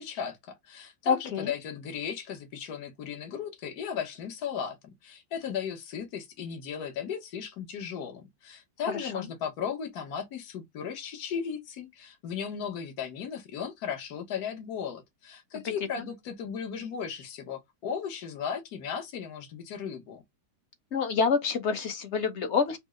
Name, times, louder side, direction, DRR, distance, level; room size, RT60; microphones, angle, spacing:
voice 1, 0.0-4.8 5.0-20.2, left 7 dB, 65° left, 1.5 m, -36 dB
voice 2, 1.1-1.5 9.0-9.1 20.9-22.8, left 6 dB, 50° left, 1.0 m, -27 dB
5.2 x 2.0 x 3.6 m
omnidirectional pair, 1.8 m